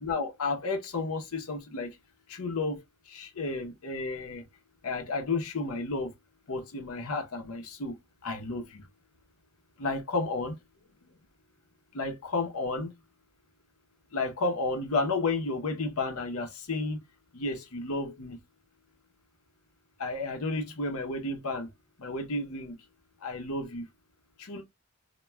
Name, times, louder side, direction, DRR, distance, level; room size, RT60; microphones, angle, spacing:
voice 1, 0.0-2.0 2.3-4.4 4.8-6.1 6.5-7.9 8.2-8.9 9.8-10.5 11.9-12.9 14.1-17.0 17.3-18.4 20.0-21.7 22.0-22.7 23.2-23.9 24.4-24.6, left 3 dB, 75° left, 0.7 m, -32 dB
3.1 x 2.2 x 2.2 m
head